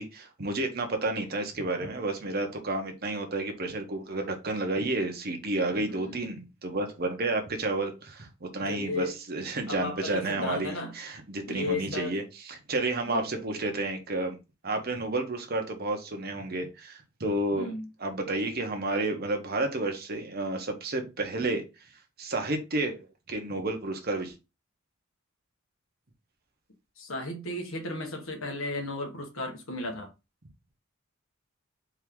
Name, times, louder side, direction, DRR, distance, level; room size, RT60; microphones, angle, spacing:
voice 1, 0.0-14.4 14.6-17.7 18.0-21.6 22.2-24.3, right 2 dB, 45° right, 1.0 m, -31 dB
voice 2, 5.7-6.4 8.7-9.2 9.7-10.9 11.5-12.3 13.0-13.4 17.5-17.9 27.0-30.1, left 2 dB, 75° left, 1.4 m, -35 dB
4.6 x 2.9 x 3.7 m
head